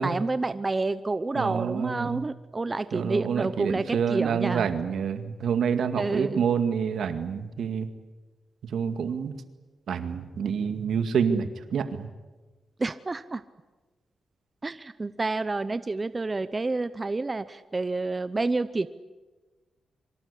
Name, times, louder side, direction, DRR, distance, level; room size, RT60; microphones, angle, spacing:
voice 1, 0.0-4.7 6.0-6.4 12.8-13.4 14.6-18.9, right 3 dB, 25° right, 13 dB, 0.8 m, -29 dB
voice 2, 1.4-2.2 2.9-7.9 8.7-9.3 9.9-12.1, right 7 dB, 80° right, 9 dB, 2.1 m, -27 dB
26.0 x 24.5 x 8.4 m, 1.2 s
cardioid pair, 105°, 0 cm